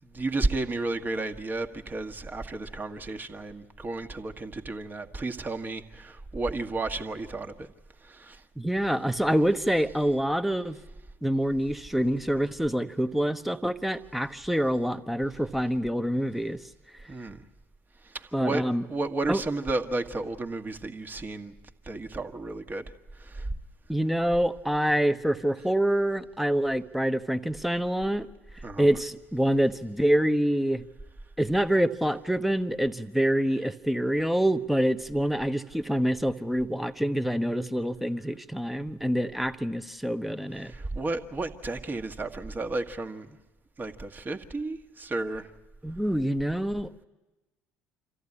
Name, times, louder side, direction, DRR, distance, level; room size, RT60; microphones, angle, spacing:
voice 1, 0.0-7.7 8.0-8.4 17.1-17.4 18.0-18.6 18.9-21.5 21.8-22.9 23.2-23.5 28.6-29.0 40.5-43.4 43.8-45.5, right 2 dB, 25° right, 5 dB, 1.6 m, -32 dB
voice 2, 8.6-10.8 11.2-16.6 18.3-18.9 19.3-19.4 23.9-28.3 28.8-30.8 31.4-40.7 45.8-47.0, equal, ahead, 10 dB, 1.0 m, -26 dB
26.5 x 14.0 x 9.8 m, 1.1 s
hypercardioid pair, 60°, 7 cm